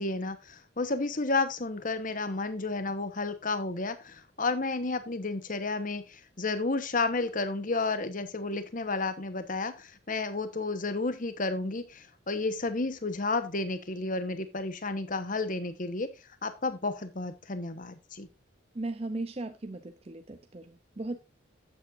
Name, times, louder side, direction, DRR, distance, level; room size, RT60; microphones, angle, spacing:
voice 1, 0.0-16.1 16.4-18.3, left 3 dB, 40° left, 11 dB, 1.1 m, -32 dB
voice 2, 18.7-21.2, right 2 dB, 30° right, 8 dB, 0.6 m, -37 dB
12.0 x 8.6 x 2.6 m, 0.26 s
head